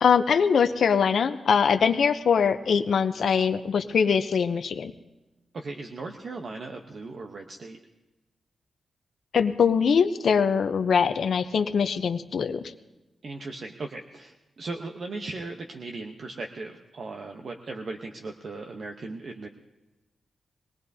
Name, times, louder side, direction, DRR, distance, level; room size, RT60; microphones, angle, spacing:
voice 1, 0.0-4.9 9.3-12.7, left 6 dB, 70° left, 8 dB, 0.6 m, -22 dB
voice 2, 5.5-7.8 13.2-19.5, right 3 dB, 55° right, 3 dB, 0.8 m, -37 dB
22.5 x 18.5 x 2.7 m, 1.1 s
wide cardioid pair, 125°, 0 cm